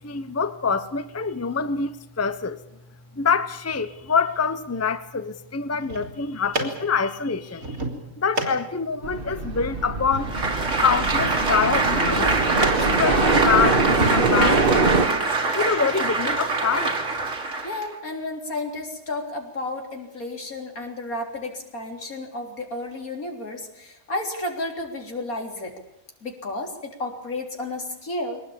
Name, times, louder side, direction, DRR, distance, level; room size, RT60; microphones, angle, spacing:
voice 1, 0.0-2.6 3.1-7.8 8.2-10.3 10.8-12.3 12.8-14.7 15.5-17.0, left 5 dB, 15° left, 0.8 m, -25 dB
sound 1, 5.6-14.2, right 1 dB, 75° right, 3.7 m, -34 dB
sound 2, 9.0-15.1, right 3 dB, 40° right, 1.7 m, -23 dB
Applause, 10.2-17.9, right 3 dB, 60° right, 2.7 m, -24 dB
voice 2, 17.6-25.7 26.2-28.4, left 2 dB, 80° left, 4.0 m, -32 dB
23.0 x 19.0 x 8.8 m
omnidirectional pair, 1.5 m